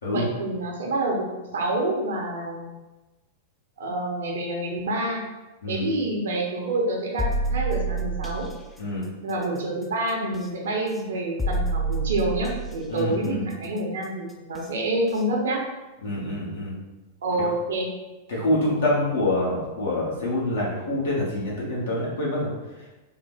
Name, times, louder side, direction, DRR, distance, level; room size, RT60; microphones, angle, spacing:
voice 1, 0.1-2.7 3.8-5.2 5.7-8.5 9.2-15.6 17.2-17.9, right 1 dB, 65° right, 0 dB, 0.7 m, -27 dB
sound 1, 7.2-8.5 10.3-10.5 11.4-12.7 14.5-14.7 15.2-15.3, right 2 dB, 5° left, 0.4 m, -27 dB
voice 2, 12.9-13.4 16.0-16.7 17.4-17.5 18.3-22.5 22.8-22.9, left 1 dB, 65° left, -6 dB, 1.3 m, -26 dB
3.6 x 2.0 x 3.3 m, 1.1 s
figure-of-eight pair, 95°, 0 cm